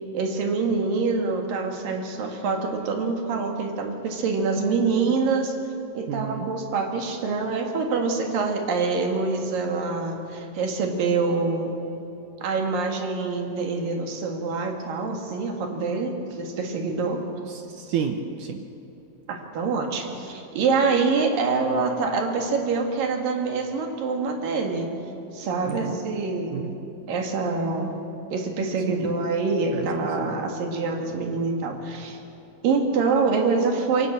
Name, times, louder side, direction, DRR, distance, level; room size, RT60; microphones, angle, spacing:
voice 1, 0.1-5.5 5.9-11.8 12.4-17.2 19.3-24.9 25.3-26.6 27.1-27.9 28.3-32.2 32.6-34.1, right 4 dB, 60° right, 3 dB, 3.4 m, -25 dB
voice 2, 6.1-6.5 17.5-18.6 25.6-26.0 26.5-26.7 28.9-29.2 29.7-30.4, right 8 dB, 75° right, 6 dB, 1.9 m, -31 dB
23.5 x 17.5 x 7.5 m, 3.0 s
omnidirectional pair, 4.8 m